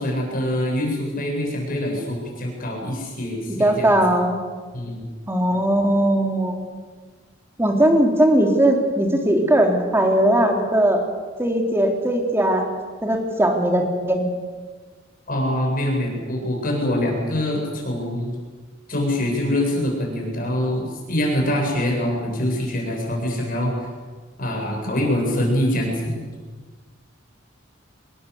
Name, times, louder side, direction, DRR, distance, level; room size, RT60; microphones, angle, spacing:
voice 1, 0.0-3.9 4.7-5.1 15.3-18.3 18.9-23.7 24.4-26.2, left 1 dB, 45° left, 0 dB, 7.9 m, -24 dB
voice 2, 3.6-4.4 5.3-6.5 7.6-11.0 11.4-12.6 13.0-14.3, right 1 dB, 15° right, 2 dB, 3.2 m, -19 dB
25.5 x 20.0 x 8.4 m, 1.5 s
head